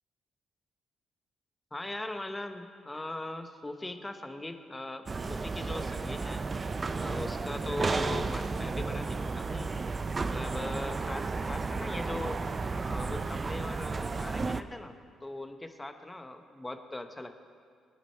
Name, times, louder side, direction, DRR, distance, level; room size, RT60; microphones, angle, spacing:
voice 1, 1.7-6.4 7.0-9.7 10.2-12.4 12.9-14.9 15.2-17.4, left 1 dB, 15° left, 7 dB, 1.0 m, -39 dB
sound 1, 5.1-14.6, right 4 dB, 30° right, 0.5 m, -33 dB
19.0 x 9.8 x 4.6 m, 2.1 s
cardioid pair, 90°, 0 cm